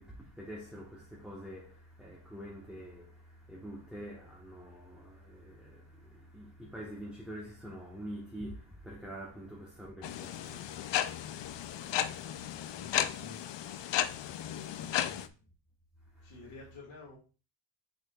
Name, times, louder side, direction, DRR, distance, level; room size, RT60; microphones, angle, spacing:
voice 1, 0.0-12.4 16.1-16.3, equal, ahead, 1.1 m, -46 dB
sound 1, 10.0-15.3, left 10 dB, 60° left, 0.5 m, -34 dB
voice 2, 12.7-13.4 14.7-15.5 16.2-17.2, left 3 dB, 85° left, 2.1 m, -51 dB
7.0 x 5.8 x 2.3 m
wide cardioid pair, 135°, 49 cm